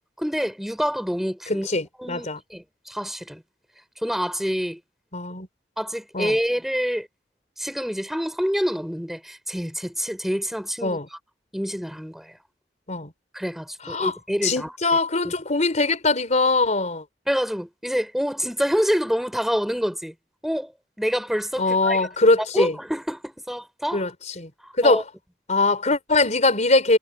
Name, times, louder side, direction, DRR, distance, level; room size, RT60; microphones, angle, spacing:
voice 1, 0.0-1.7 2.0-3.4 4.0-4.8 5.8-7.1 7.6-11.2 11.5-12.4 13.3-14.7 15.2-15.3 17.3-20.1 20.4-20.7 21.0-22.1 22.5-24.0 24.6-25.0, equal, ahead, 3.9 m, -27 dB
voice 2, 1.5-2.4 5.1-5.5 6.1-6.4 10.8-11.1 12.9-13.1 13.8-14.1 14.4-17.0 21.6-22.8 23.9-24.1 24.4-24.5 24.8-25.0 25.5-27.0, left 3 dB, 40° left, 4.6 m, -21 dB
head